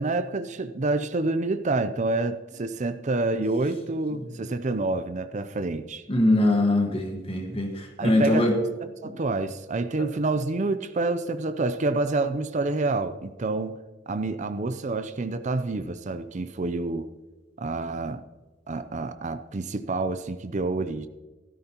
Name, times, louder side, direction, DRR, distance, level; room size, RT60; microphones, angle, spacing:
voice 1, 0.0-6.0 8.0-8.6 9.0-13.8 14.1-17.1 17.6-18.2 18.7-21.1, right 2 dB, 40° right, 0.5 m, -28 dB
voice 2, 6.1-8.5 9.0-9.1 10.0-10.1, left 1 dB, 30° left, 1.5 m, -23 dB
14.5 x 13.0 x 2.9 m
head